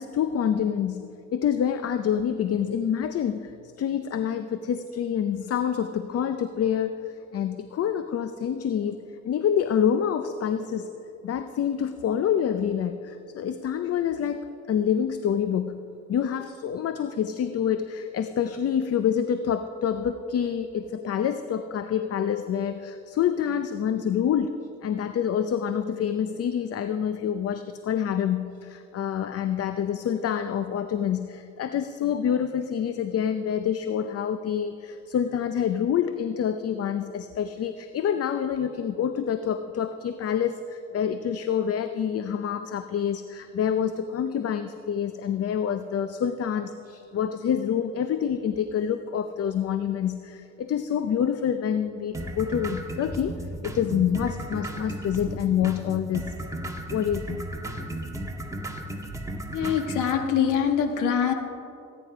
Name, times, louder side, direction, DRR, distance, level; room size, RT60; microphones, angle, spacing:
voice 1, 0.0-3.5 3.8-9.0 9.2-10.9 11.2-56.3 56.9-57.4, left 8 dB, 50° left, 10 dB, 0.6 m, -27 dB
sound 1, 52.1-60.1, right 1 dB, 10° right, 1.6 m, -35 dB
voice 2, 59.5-61.3, left 8 dB, 85° left, 5 dB, 1.5 m, -24 dB
19.0 x 9.8 x 5.0 m, 2.7 s
cardioid pair, 90°, 30 cm